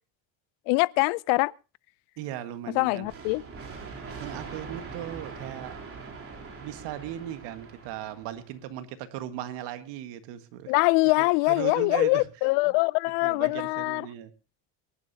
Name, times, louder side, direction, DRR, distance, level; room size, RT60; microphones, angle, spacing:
voice 1, 0.7-1.5 2.7-3.4 10.7-14.1, left 25 dB, 85° left, 0.6 m, -23 dB
voice 2, 2.2-3.1 4.2-5.8 6.6-10.7 11.2-12.2 13.2-14.3, right 12 dB, 70° right, 1.7 m, -37 dB
sound 1, 3.0-8.6, right 4 dB, 30° right, 3.6 m, -42 dB
23.5 x 11.5 x 2.7 m
cardioid pair, 150°, 43 cm